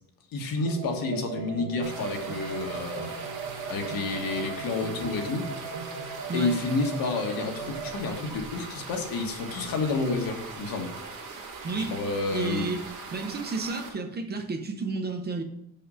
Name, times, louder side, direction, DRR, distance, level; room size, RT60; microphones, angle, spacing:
voice 1, 0.3-3.1 3.7-5.5 6.3-10.9 11.7-12.7, left 3 dB, 65° left, 3 dB, 1.5 m, -30 dB
sound 1, 0.6-8.0, right 6 dB, 70° right, 1.2 m, -38 dB
sound 2, 1.8-13.9, right 4 dB, 55° right, 1.7 m, -41 dB
voice 2, 11.6-12.0 12.3-15.4, right 3 dB, 25° right, 6 dB, 0.6 m, -32 dB
6.2 x 5.7 x 5.5 m, 0.75 s
cardioid pair, 175°, 37 cm